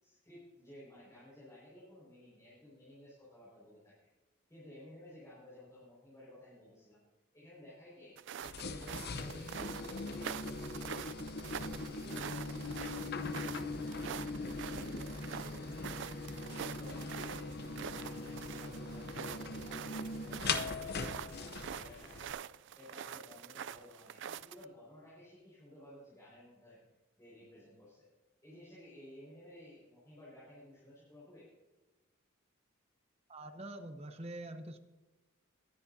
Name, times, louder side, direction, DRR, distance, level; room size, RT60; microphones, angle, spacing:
voice 1, 0.0-3.9 4.5-7.0 7.3-8.2 8.5-10.3 10.8-11.1 11.5-13.5 13.8-14.3 14.6-15.9 16.5-22.4 22.7-26.8 27.2-28.1 28.4-31.5, left 1 dB, 15° left, -9 dB, 5.0 m, -56 dB
sound 1, 8.2-24.6, right 8 dB, 60° right, 0.4 m, -46 dB
sound 2, 8.4-22.3, left 3 dB, 50° left, 0.7 m, -41 dB
voice 2, 33.3-34.8, right 1 dB, 30° right, 7 dB, 0.8 m, -45 dB
21.0 x 10.5 x 2.7 m, 1.2 s
head